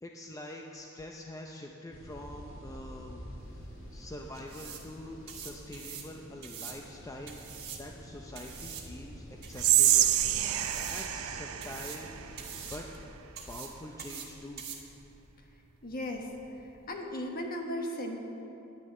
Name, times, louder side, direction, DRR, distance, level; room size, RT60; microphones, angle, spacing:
voice 1, 0.0-3.6 3.9-7.4 7.8-10.5 10.8-12.1 12.7-12.9 13.5-14.6, left 1 dB, 15° left, 0 dB, 0.6 m, -45 dB
sound 1, 1.9-13.1, equal, 65° left, 2.5 m, -49 dB
sound 2, 3.4-16.9, right 7 dB, 50° right, 1.6 m, -47 dB
Whispering, 9.6-12.8, right 12 dB, 75° right, 0.6 m, -27 dB
voice 2, 15.8-16.3 16.6-18.2, left 1 dB, 45° left, 2 dB, 1.3 m, -36 dB
10.5 x 6.8 x 8.8 m, 3.0 s
head